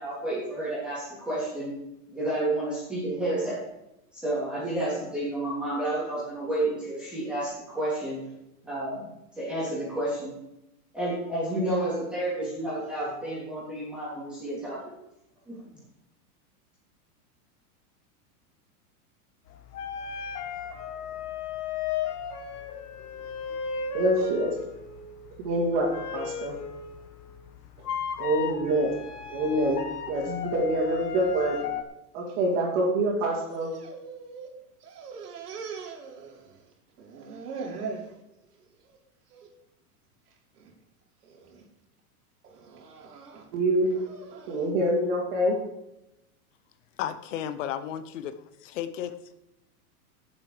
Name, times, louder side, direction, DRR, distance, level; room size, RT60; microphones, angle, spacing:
voice 1, 0.0-1.8 2.1-3.6 4.1-8.2 8.6-9.1 9.4-10.4 10.9-14.8 15.5-15.6, right 1 dB, ahead, -10 dB, 3.5 m, -30 dB
sound 1, 19.5-31.8, left 7 dB, 85° left, 1.6 m, -35 dB
voice 2, 23.9-24.5 25.4-25.9 26.1-26.5 28.2-28.9 29.3-29.8 30.1-31.6 32.1-33.7 43.5-43.9 44.5-45.6, right 1 dB, 35° right, -6 dB, 3.0 m, -25 dB
sound 2, 33.4-34.5 34.8-36.7 37.0-38.1 38.6-39.0 39.3-39.5 40.3-40.7 41.2-41.6 42.4-44.6, right 5 dB, 90° right, 3.0 m, -41 dB
voice 3, 47.0-48.3 48.6-49.3, left 10 dB, 55° left, 12 dB, 1.0 m, -33 dB
17.0 x 7.3 x 5.1 m, 0.89 s
supercardioid pair, 165°, 45 cm